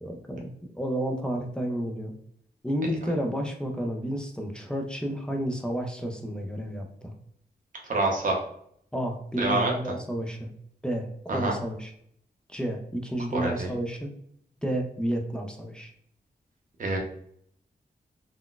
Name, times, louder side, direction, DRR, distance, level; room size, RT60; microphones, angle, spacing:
voice 1, 0.0-2.1 2.6-7.1 8.9-10.5 10.8-11.9 12.5-14.1 14.6-15.9, equal, 5° left, 2 dB, 0.4 m, -31 dB
voice 2, 7.9-8.4 9.4-9.7 11.3-11.5 13.3-13.7 16.8-17.0, right 2 dB, 55° right, -1 dB, 0.7 m, -26 dB
3.8 x 2.2 x 2.3 m, 0.68 s
wide cardioid pair, 175°, 16 cm